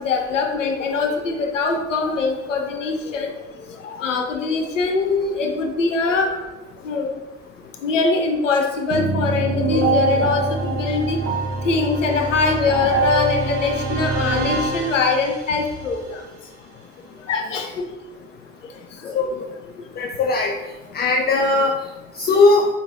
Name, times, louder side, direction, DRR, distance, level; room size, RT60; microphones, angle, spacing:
voice 1, 0.0-3.3 3.8-6.3 6.8-7.2 7.8-11.2 11.6-16.2 17.3-17.9 19.0-19.1, left 4 dB, 90° left, 4 dB, 0.5 m, -22 dB
sound 1, 8.9-15.7, right 2 dB, 65° right, 0.8 m, -24 dB
voice 2, 19.1-19.5 20.0-20.5 20.9-21.8 22.1-22.7, left 3 dB, 30° left, 1 dB, 0.3 m, -18 dB
4.5 x 2.8 x 2.5 m, 1.1 s
figure-of-eight pair, 55°, 37 cm